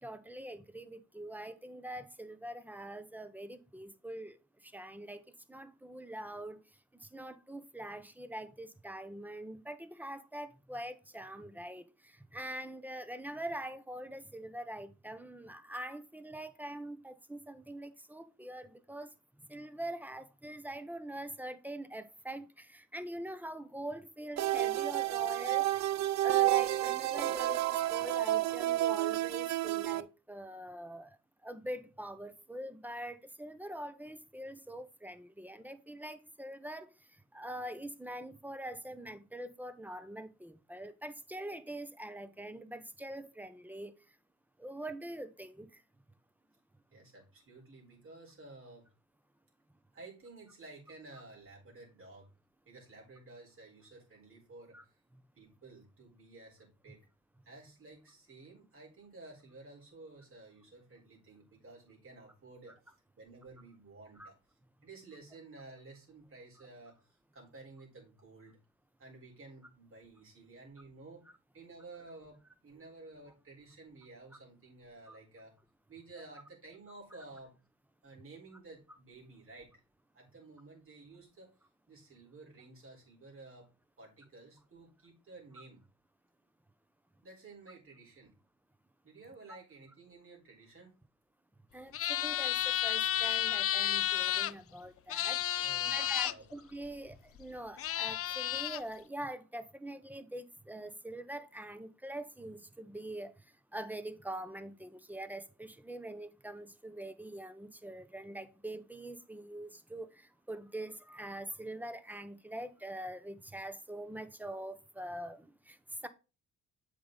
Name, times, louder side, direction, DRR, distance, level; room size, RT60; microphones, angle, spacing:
voice 1, 0.0-5.2 5.5-25.9 26.2-44.2 44.6-45.8 54.7-54.8 55.1-55.2 64.2-64.3 75.1-75.2 89.5-89.6 91.7-116.1, right 1 dB, 5° right, 0.9 m, -44 dB
sound 1, 24.4-30.0, right 14 dB, 65° right, 0.5 m, -30 dB
voice 2, 46.9-48.9 49.9-52.3 52.7-55.0 55.4-57.1 57.4-64.3 64.8-68.6 69.0-71.2 71.5-75.5 75.9-77.5 78.0-79.7 80.1-81.5 81.9-83.6 84.0-85.8 87.2-88.3 89.0-90.9 95.6-96.4, right 3 dB, 45° right, 4.3 m, -53 dB
sound 2, 91.9-94.5 95.1-96.3 97.4-97.5 97.8-98.8, left 12 dB, 50° left, 0.4 m, -32 dB
7.7 x 5.2 x 3.9 m
cardioid pair, 90°, 30 cm